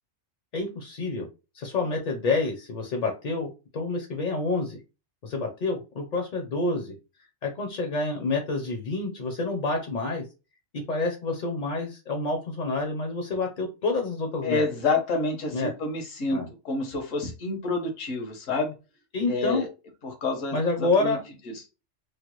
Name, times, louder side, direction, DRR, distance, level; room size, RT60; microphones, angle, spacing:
voice 1, 0.5-1.3 1.5-4.8 5.2-6.9 7.4-10.2 10.7-14.6 15.5-15.7 16.3-16.5 19.1-19.6 20.5-21.2, left 3 dB, 50° left, 3 dB, 0.6 m, -28 dB
voice 2, 14.4-18.7 19.3-19.7 20.0-21.2 21.4-21.6, left 3 dB, 85° left, 3 dB, 1.3 m, -28 dB
3.1 x 2.2 x 2.9 m, 0.29 s
omnidirectional pair, 1.3 m